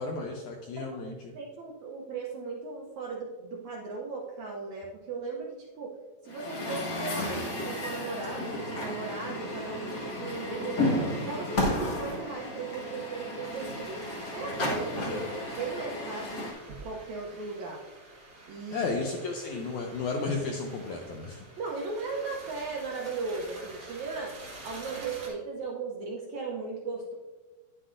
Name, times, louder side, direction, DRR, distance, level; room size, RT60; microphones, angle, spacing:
voice 1, 0.0-1.3 15.1-15.3 18.7-21.4, left 3 dB, 80° left, 2 dB, 1.7 m, -33 dB
voice 2, 1.3-5.9 6.2-10.9 11.2-14.0 14.3-15.3 15.6-16.4 16.7-17.8 18.5-18.9 21.6-24.4 24.6-27.1, right 4 dB, 75° right, -2 dB, 1.7 m, -37 dB
Truck, 6.3-16.5, left 1 dB, 50° left, 1.2 m, -33 dB
sound 1, 13.4-25.3, right 2 dB, 50° right, 1.2 m, -48 dB
9.6 x 7.8 x 2.5 m, 1.3 s
omnidirectional pair, 4.1 m